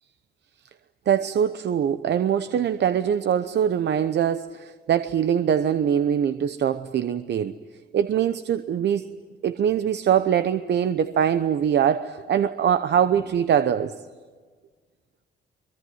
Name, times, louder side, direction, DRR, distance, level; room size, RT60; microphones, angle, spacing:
voice 1, 1.1-7.5 7.9-9.1 9.4-14.0, right 9 dB, 60° right, 0.9 m, -23 dB
23.5 x 23.0 x 9.7 m
cardioid pair, 90°, 20 cm